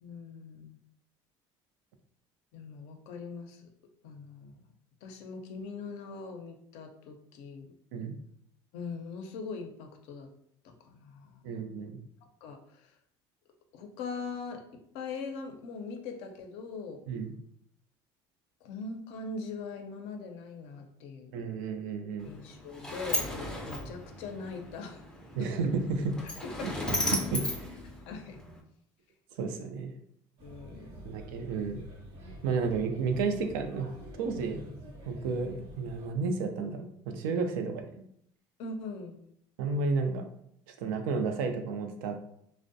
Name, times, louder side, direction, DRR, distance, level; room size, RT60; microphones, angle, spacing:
voice 1, 0.0-0.8 2.5-3.7 4.0-4.6 5.0-7.7 8.7-10.3 10.6-11.4 12.4-12.9 13.7-14.7 14.9-17.0 18.6-21.4 22.2-25.0 25.4-25.5 26.4-27.1 28.1-28.4 30.4-31.2 32.5-32.9 37.6-37.7 38.6-39.3, left 4 dB, 70° left, 4 dB, 0.5 m, -41 dB
voice 2, 11.4-12.0 17.1-17.3 21.3-22.3 25.4-26.2 26.6-27.8 29.4-29.9 31.1-31.8 32.4-33.9 34.2-34.6 35.0-37.9 39.6-40.3 40.7-42.2, right 4 dB, 85° right, 6 dB, 0.4 m, -32 dB
Sliding door, 22.2-28.6, left 1 dB, 5° left, 0.4 m, -36 dB
Male speech man speaking / Child speech kid speaking / Chatter, 30.4-36.1, right 1 dB, 60° right, 0.7 m, -47 dB
2.5 x 2.0 x 2.5 m, 0.70 s
supercardioid pair, 85°, 11 cm